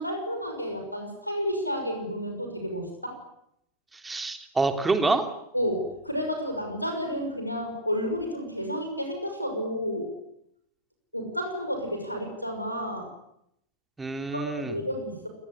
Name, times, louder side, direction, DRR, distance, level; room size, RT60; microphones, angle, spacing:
voice 1, 0.0-3.2 5.5-10.1 11.1-13.1 14.3-15.3, equal, 90° left, 4 dB, 6.2 m, -31 dB
voice 2, 4.0-5.2 14.0-14.8, right 3 dB, 10° right, 7 dB, 3.4 m, -26 dB
28.5 x 20.5 x 9.9 m, 0.77 s
figure-of-eight pair, 90°, 0 cm